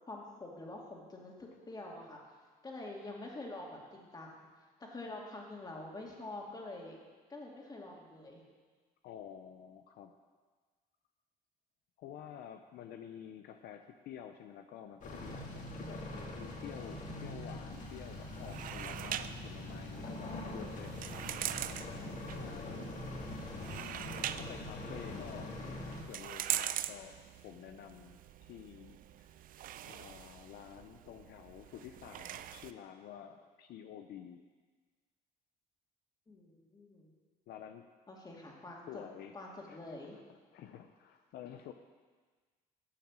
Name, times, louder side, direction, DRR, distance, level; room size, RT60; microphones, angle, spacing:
voice 1, 0.1-2.2 2.6-4.5 4.8-7.0 7.3-8.4 36.3-37.1 38.1-38.9 39.3-40.2, left 2 dB, 25° left, -1 dB, 2.4 m, -47 dB
voice 2, 9.0-10.1 12.0-16.0 16.3-21.4 22.3-23.1 23.7-25.6 26.0-29.3 29.8-34.4 37.5-37.9 38.9-39.4 39.7-39.9 40.3-41.7, left 9 dB, 70° left, 7 dB, 0.6 m, -50 dB
sound 1, 15.0-26.0, left 1 dB, 50° left, 2.1 m, -43 dB
sound 2, 17.7-32.7, right 11 dB, 55° right, 0.5 m, -43 dB
9.9 x 7.1 x 7.5 m, 1.4 s
cardioid pair, 110°, 17 cm